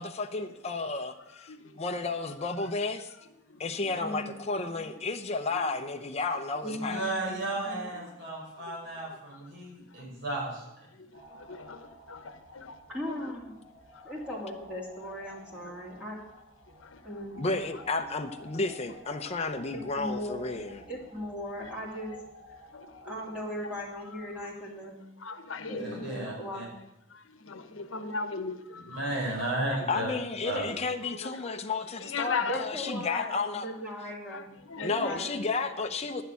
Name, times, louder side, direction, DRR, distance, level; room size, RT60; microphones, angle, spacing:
voice 1, 0.0-3.1 3.6-7.0 17.4-20.8 29.9-33.7 34.8-36.2, left 3 dB, 35° left, 0.7 m, -32 dB
voice 2, 1.5-1.8 3.5-3.9 5.6-5.8 8.0-8.1 8.7-8.8 9.7-10.0 10.9-12.8 13.1-13.3 13.9-14.1 15.6-15.9 16.7-17.1 17.7-17.8 21.6-21.7 22.7-23.1 23.6-23.7 24.1-24.2 25.2-26.1 27.1-29.9 31.0-31.6 32.0-32.9 34.3-35.3, left 4 dB, 80° left, 1.0 m, -39 dB
voice 3, 4.0-4.9 6.6-7.8 12.9-13.6 14.0-16.2 17.0-17.4 19.7-22.2 22.5-22.6 23.0-25.0 25.6-26.7 32.5-35.4, equal, 5° right, 2.5 m, -38 dB
voice 4, 6.6-10.9 25.8-26.7 28.7-30.1 30.4-30.7, right 2 dB, 65° right, 5.1 m, -34 dB
sound 1, 11.1-24.4, left 1 dB, 45° right, 3.3 m, -52 dB
10.5 x 6.6 x 8.3 m
head